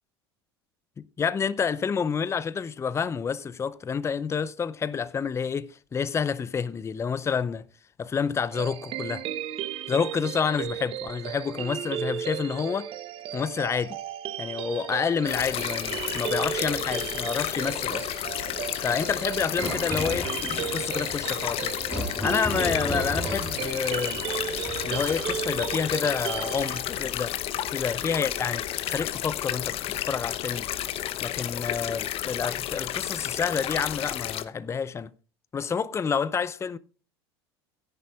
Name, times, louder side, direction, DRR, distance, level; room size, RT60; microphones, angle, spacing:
voice 1, 1.2-7.7 8.0-9.2 9.9-12.9 13.3-14.0 14.4-18.1 18.8-21.7 22.2-24.2 24.8-27.3 27.7-30.7 31.2-35.1 35.5-36.8, left 6 dB, 20° left, 0.6 m, -29 dB
sound 1, 8.5-26.8, right 10 dB, 45° right, 1.0 m, -35 dB
sound 2, 15.2-15.3 19.0-27.4, equal, 5° left, 3.1 m, -37 dB
sound 3, 15.3-34.4, left 12 dB, 45° left, 0.9 m, -32 dB
17.0 x 10.0 x 2.4 m
hypercardioid pair, 80°, 13 cm